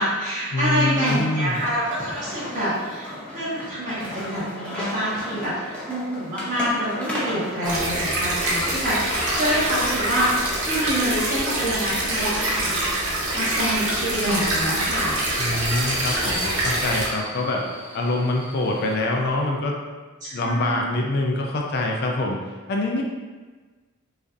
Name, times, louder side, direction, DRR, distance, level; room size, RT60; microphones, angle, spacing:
voice 1, 0.0-12.9 13.3-15.2 20.2-20.9, equal, 35° right, -9 dB, 1.4 m, -26 dB
voice 2, 0.5-1.6 15.4-17.6 17.9-19.8 20.3-22.4 22.7-23.0, left 2 dB, 50° left, 0 dB, 0.4 m, -25 dB
sound 1, 0.9-10.9, left 1 dB, 5° left, 0.6 m, -35 dB
sound 2, 7.6-17.1, right 1 dB, 80° right, 1.0 m, -25 dB
Subway metro underground, 13.3-18.9, equal, 65° right, 1.3 m, -37 dB
5.0 x 2.5 x 2.6 m, 1.3 s
head